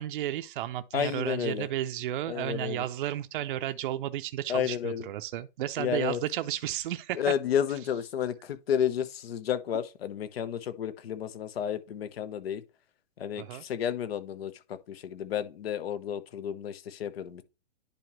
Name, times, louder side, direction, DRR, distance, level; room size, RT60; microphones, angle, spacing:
voice 1, 0.0-7.3 7.7-7.8 13.4-13.6, right 13 dB, 50° right, 0.6 m, -33 dB
voice 2, 0.9-1.7 2.3-2.8 4.5-5.1 5.8-6.2 7.2-8.3 8.7-12.6 13.2-13.4 13.7-14.5 15.0-17.4, left 9 dB, 65° left, 1.0 m, -31 dB
10.5 x 4.4 x 3.1 m
hypercardioid pair, 120°, 33 cm